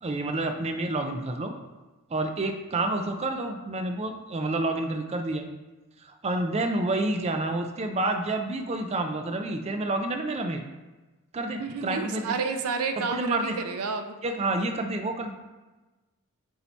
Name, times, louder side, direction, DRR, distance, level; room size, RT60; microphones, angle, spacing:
voice 1, 0.0-1.5 2.1-5.4 6.0-10.6 11.3-12.4 13.0-13.6 14.2-15.3, right 2 dB, 30° right, 5 dB, 0.4 m, -29 dB
voice 2, 11.6-14.2, right 4 dB, 85° right, 8 dB, 0.5 m, -30 dB
8.2 x 2.8 x 4.4 m, 1.2 s
head